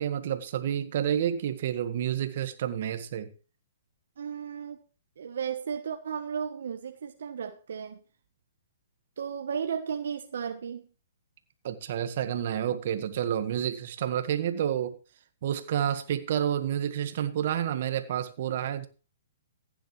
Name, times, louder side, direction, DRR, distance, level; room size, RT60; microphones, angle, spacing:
voice 1, 0.0-3.3 11.6-15.0 15.4-18.9, right 10 dB, 55° right, 1.7 m, -29 dB
voice 2, 4.2-4.8 5.2-8.0 9.2-10.9, right 7 dB, 70° right, 1.2 m, -34 dB
15.5 x 10.0 x 3.3 m
hypercardioid pair, 150°, 0 cm